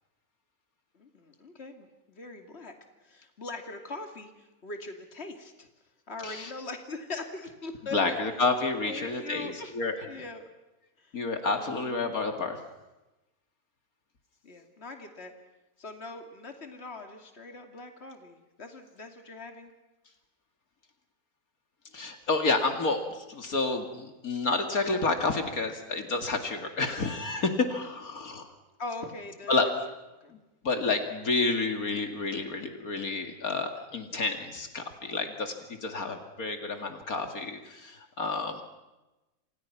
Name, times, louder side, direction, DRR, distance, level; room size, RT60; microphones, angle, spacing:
voice 1, 0.9-2.7 3.0-4.3 4.6-5.7 6.1-8.2 8.8-9.7 10.0-10.5 11.0-11.1 11.5-12.0 14.4-15.3 15.8-19.7 28.8-29.7 30.2-30.3, left 3 dB, 45° left, 5 dB, 2.9 m, -41 dB
voice 2, 7.9-9.9 11.1-12.6 21.9-28.5 29.5-29.7 30.6-38.6, left 3 dB, 75° left, 5 dB, 2.8 m, -30 dB
29.5 x 27.0 x 5.9 m, 1.0 s
omnidirectional pair, 1.5 m